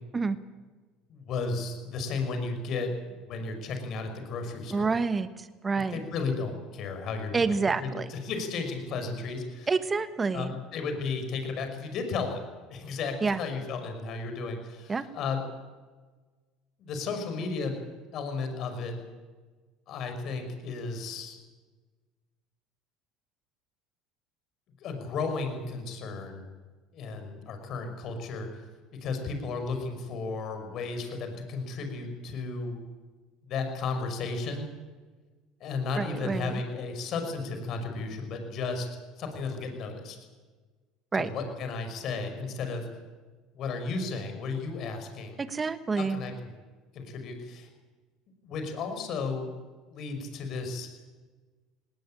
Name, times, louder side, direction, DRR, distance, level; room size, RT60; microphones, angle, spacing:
voice 1, 1.1-4.9 5.8-9.7 10.3-12.4 12.7-15.4 16.8-17.8 18.1-19.0 19.9-21.4 24.8-26.5 26.9-28.6 28.9-32.8 33.4-34.7 35.6-38.9 39.2-40.2 41.1-42.9 43.5-45.4 46.0-46.3 46.9-47.7 48.4-49.5 49.9-50.9, left 4 dB, 55° left, 6 dB, 5.6 m, -34 dB
voice 2, 4.7-6.0 7.3-8.1 9.7-10.5 13.2-13.4 14.9-15.1 36.0-36.6 41.1-41.3 45.4-46.2, right 4 dB, 25° right, 12 dB, 1.4 m, -28 dB
19.5 x 18.5 x 8.9 m, 1.3 s
supercardioid pair, 85°, 0 cm